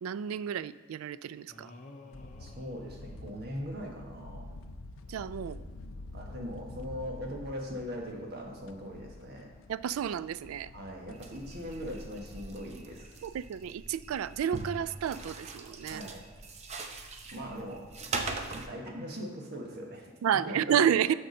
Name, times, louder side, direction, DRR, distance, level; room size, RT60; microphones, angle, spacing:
voice 1, 0.0-1.7 5.1-5.6 9.7-10.7 13.2-16.0 20.2-21.1, right 9 dB, 80° right, 17 dB, 0.3 m, -30 dB
sound 1, 1.5-4.0, left 2 dB, 35° left, 0.7 m, -52 dB
sound 2, 2.1-12.4, left 2 dB, 70° left, 0.5 m, -48 dB
voice 2, 2.4-4.5 5.4-5.6 6.1-9.5 10.7-13.2 15.8-16.3 17.3-17.9 18.5-20.1 20.5-20.8 21.1-21.2, equal, 50° right, 1 dB, 1.4 m, -40 dB
sound 3, 11.1-18.7, right 3 dB, 35° right, 0.6 m, -41 dB
6.7 x 5.9 x 6.4 m, 1.3 s
head